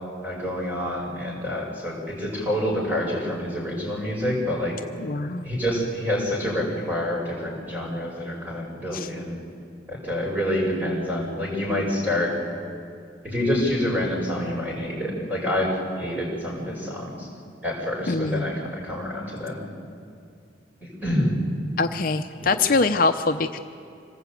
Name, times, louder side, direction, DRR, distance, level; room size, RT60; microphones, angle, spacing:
voice 1, 0.2-4.8 5.4-9.4 9.9-12.4 13.2-17.3 17.6-19.6 20.8-21.4 22.4-22.5, left 1 dB, 10° right, -3 dB, 5.9 m, -27 dB
voice 2, 5.0-5.5 8.9-9.1 18.1-18.5 21.8-23.6, left 3 dB, 50° left, 7 dB, 0.6 m, -23 dB
26.0 x 18.5 x 8.3 m, 2.5 s
head